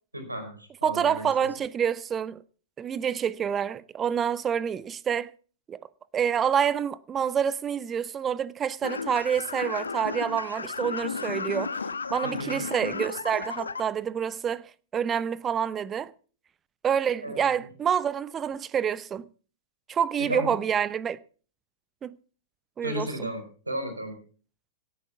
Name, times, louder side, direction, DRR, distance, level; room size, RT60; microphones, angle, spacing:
voice 1, 0.1-1.3 12.2-12.6 17.2-17.7 20.2-20.5 22.8-24.2, equal, 85° right, 4.9 m, -34 dB
voice 2, 0.8-2.4 2.8-5.3 5.7-5.8 6.1-11.7 12.1-16.1 16.8-19.2 19.9-21.2 22.0-22.2 22.8-23.3, right 8 dB, 20° right, 0.7 m, -27 dB
sound 1, 8.8-13.8, left 5 dB, 80° left, 1.0 m, -34 dB
17.5 x 9.2 x 5.9 m
figure-of-eight pair, 100°, 0 cm